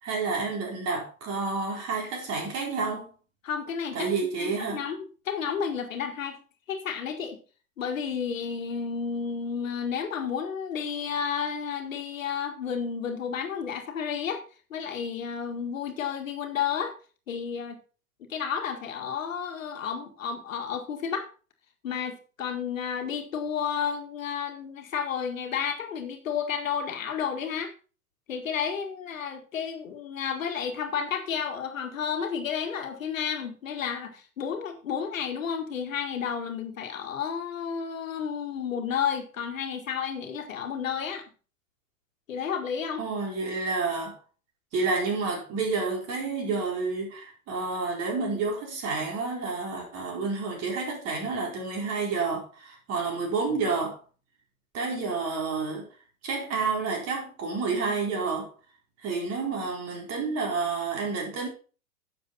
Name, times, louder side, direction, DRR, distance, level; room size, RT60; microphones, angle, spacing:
voice 1, 0.0-3.1 3.9-4.8 43.0-44.2 44.7-54.0 54.7-55.8 56.2-58.5 59.0-61.5, right 4 dB, 35° right, 4.5 m, -29 dB
voice 2, 3.4-4.1 4.4-6.4 6.7-7.4 7.8-14.4 14.7-16.9 17.3-17.8 18.3-21.3 21.8-27.7 28.3-41.2 42.3-43.0, left 7 dB, 70° left, 1.8 m, -31 dB
10.5 x 7.3 x 4.2 m
figure-of-eight pair, 90°, 41 cm